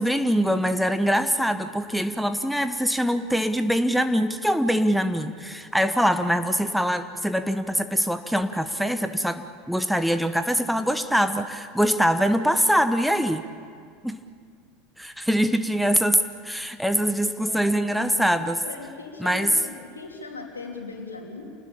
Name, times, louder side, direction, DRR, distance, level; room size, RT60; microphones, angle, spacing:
voice 1, 0.0-13.4 14.0-14.2 15.0-18.6 19.2-19.5, equal, ahead, 9 dB, 1.1 m, -23 dB
voice 2, 18.6-21.6, left 3 dB, 80° left, 1 dB, 3.4 m, -38 dB
28.0 x 20.0 x 8.7 m, 2.2 s
figure-of-eight pair, 75°, 0 cm